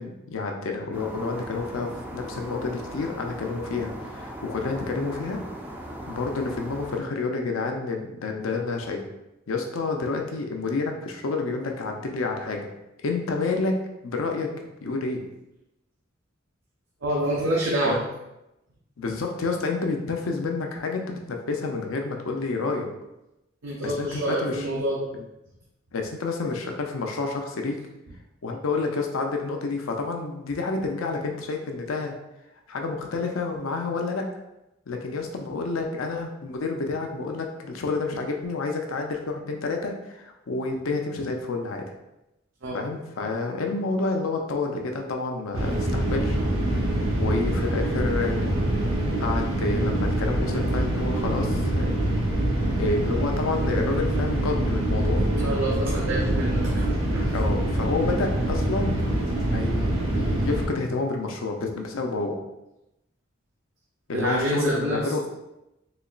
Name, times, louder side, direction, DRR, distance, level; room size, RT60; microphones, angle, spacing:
voice 1, 0.0-5.4 6.1-9.0 9.5-12.7 13.0-13.8 14.0-14.5 14.8-15.2 17.8-18.1 19.0-22.9 23.8-24.6 25.1-25.2 25.9-27.8 28.4-32.1 32.7-34.3 34.9-41.9 42.7-46.4 47.2-48.6 49.2-52.1 52.8-55.2 57.3-59.0 59.4-62.4 64.1-65.3, left 3 dB, 85° left, 3 dB, 0.5 m, -29 dB
sound 1, 0.9-7.0, right 1 dB, 10° right, 0.3 m, -38 dB
voice 2, 17.0-18.0 23.6-25.1 42.6-42.8 55.4-56.9 57.1-57.2 64.1-65.1, right 1 dB, 65° right, -4 dB, 0.6 m, -27 dB
sound 2, 45.5-60.7, right 1 dB, 85° right, 0.9 m, -25 dB
4.0 x 2.9 x 2.4 m, 0.91 s
head